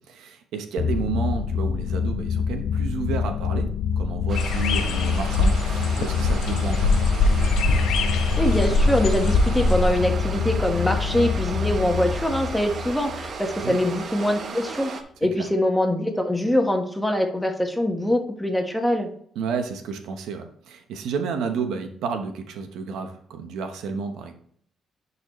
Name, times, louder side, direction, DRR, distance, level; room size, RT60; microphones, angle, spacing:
voice 1, 0.0-3.7 4.0-7.0 13.6-13.8 15.4-15.5 19.3-24.3, right 5 dB, 85° right, 6 dB, 0.9 m, -31 dB
sound 1, 0.8-13.6, left 6 dB, 65° left, 0.3 m, -26 dB
sound 2, 4.3-15.0, right 5 dB, 50° right, 0.9 m, -36 dB
sound 3, 4.4-10.0, left 2 dB, 85° left, 0.9 m, -23 dB
voice 2, 8.4-14.9 15.2-19.1, left 1 dB, 5° left, 4 dB, 1.4 m, -23 dB
10.5 x 4.2 x 3.1 m, 0.62 s
cardioid pair, 90°, 0 cm